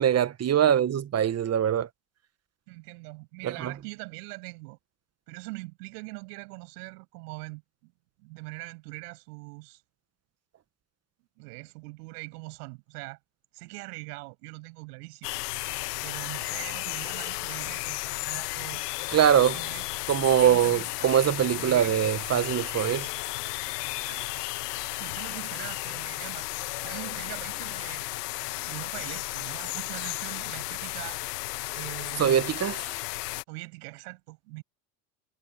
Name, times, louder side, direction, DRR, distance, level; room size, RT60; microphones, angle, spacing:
voice 1, 0.0-1.9 3.4-3.7 19.1-19.6 20.1-23.1 32.2-32.9, right 9 dB, 30° right, 1.4 m, -23 dB
voice 2, 2.7-4.8 5.3-7.9 8.2-9.8 11.4-13.2 13.5-15.3 15.6-18.8 19.5-20.0 20.4-20.8 21.6-21.9 22.9-23.0 24.0-26.4 26.8-28.0 28.7-31.2 31.7-32.5 33.5-34.6, right 28 dB, 75° right, 7.1 m, -42 dB
sound 1, 15.2-33.4, left 20 dB, 80° left, 1.3 m, -34 dB
supercardioid pair, 90°, 47 cm